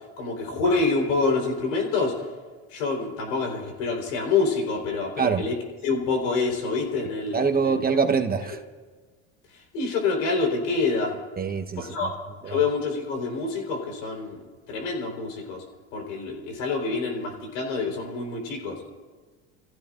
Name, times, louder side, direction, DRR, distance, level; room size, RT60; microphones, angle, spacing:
voice 1, 0.2-2.3 2.7-5.5 5.8-7.8 9.5-11.1 11.8-12.1 12.4-14.4 14.7-15.6 15.9-18.8, left 4 dB, 80° left, 1 dB, 4.1 m, -27 dB
voice 2, 7.3-8.6 11.4-11.9 12.4-12.6, right 5 dB, 25° right, 5 dB, 1.0 m, -24 dB
27.5 x 15.5 x 2.5 m, 1.4 s
supercardioid pair, 90°, 36 cm